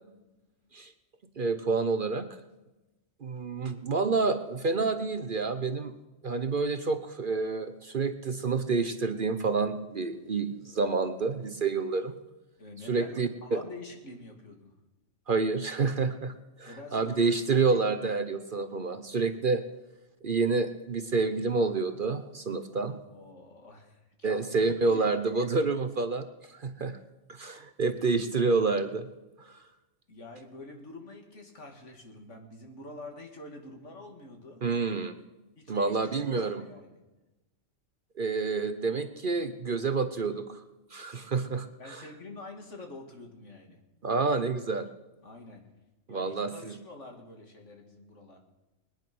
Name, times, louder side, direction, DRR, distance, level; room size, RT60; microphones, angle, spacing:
voice 1, 1.4-2.3 3.2-5.9 6.2-12.1 12.9-13.6 15.3-16.3 16.6-19.6 20.2-23.0 24.2-27.0 27.3-29.1 34.6-35.2 35.7-36.6 38.2-40.6 40.9-42.0 44.0-44.9 46.1-46.7, right 4 dB, 45° right, 9 dB, 0.9 m, -28 dB
voice 2, 12.6-14.7 16.7-17.4 22.8-25.2 26.5-26.6 30.1-34.6 35.6-37.0 41.8-43.8 45.2-45.7 46.1-48.4, left 2 dB, 65° left, 3 dB, 2.6 m, -47 dB
21.5 x 10.0 x 6.1 m, 1.0 s
omnidirectional pair, 1.3 m